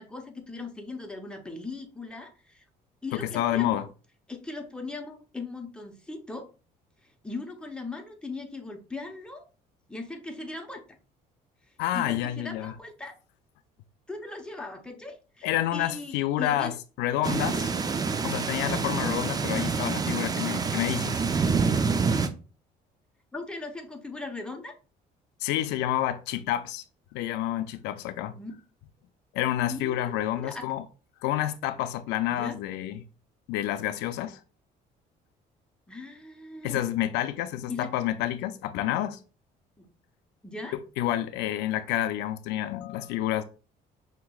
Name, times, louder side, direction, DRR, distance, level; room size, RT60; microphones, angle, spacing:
voice 1, 0.0-2.6 3.0-3.9 4.3-6.5 7.0-9.5 9.9-11.0 11.9-13.1 14.1-16.8 17.3-17.8 23.3-24.7 28.3-28.5 29.6-30.6 32.3-32.6 35.9-36.8 37.7-37.9 39.8-39.9 40.4-40.7, left 3 dB, 5° left, 0.8 m, -39 dB
voice 2, 3.1-3.9 11.8-12.7 15.4-17.7 18.2-21.2 25.4-26.8 27.1-28.4 29.3-30.8 31.2-33.0 33.5-34.4 36.6-39.2 40.7-43.4, left 12 dB, 90° left, 0.4 m, -29 dB
sound 1, 17.2-22.3, right 5 dB, 20° right, 0.4 m, -27 dB
5.8 x 2.9 x 2.3 m
cardioid pair, 110°, 17 cm